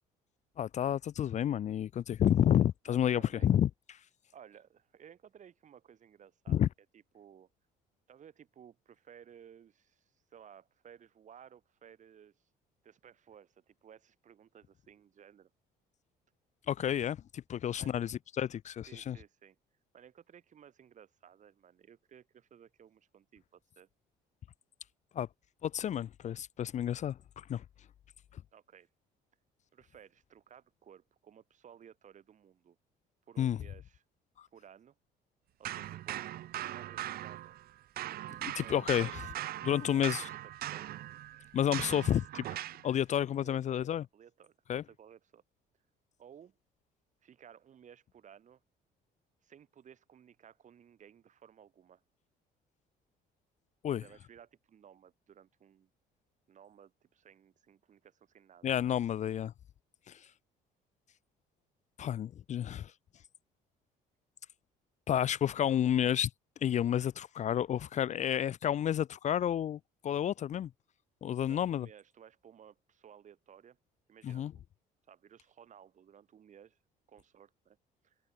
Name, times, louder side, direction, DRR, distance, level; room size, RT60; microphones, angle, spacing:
voice 1, 0.6-3.7 6.5-6.7 16.7-19.2 25.1-25.3 25.6-27.6 28.3-28.4 33.4-33.6 34.4-34.5 38.4-39.1 39.6-40.3 41.5-44.0 44.7-44.8 53.8-54.0 58.6-59.5 60.1-60.2 62.0-62.9 65.1-66.3 66.6-70.7 71.2-71.9 74.2-74.5, left 10 dB, 45° left, 0.6 m, -30 dB
voice 2, 2.9-3.5 4.3-6.7 6.9-7.5 8.1-12.4 12.8-15.5 17.8-17.9 18.9-19.6 19.9-23.9 28.5-28.9 29.7-32.8 33.3-34.0 34.5-34.9 35.6-36.2 36.5-37.6 38.6-40.1 40.4-40.9 43.3-43.8 44.1-45.4 46.2-46.6 47.2-48.6 49.4-52.0 54.0-55.9 56.5-58.7 71.4-73.8 74.1-74.6 75.1-76.8 77.1-77.8 78.0-78.2, right 8 dB, 45° right, 3.1 m, -57 dB
sound 1, 35.6-37.7 38.0-42.9, right 14 dB, 65° right, 1.0 m, -40 dB
cardioid pair, 110°, 17 cm